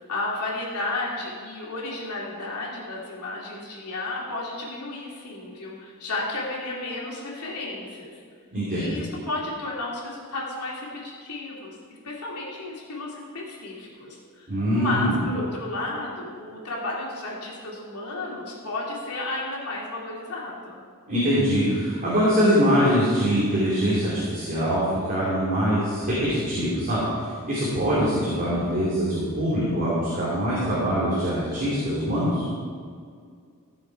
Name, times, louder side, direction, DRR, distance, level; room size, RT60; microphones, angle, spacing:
voice 1, 0.1-8.1 8.7-11.8 12.0-14.5 14.7-20.8, left 2 dB, 85° left, -4 dB, 3.0 m, -33 dB
voice 2, 8.5-8.9 14.5-15.2 21.1-32.5, equal, 40° right, -9 dB, 2.8 m, -23 dB
15.0 x 7.0 x 4.7 m, 2.1 s
head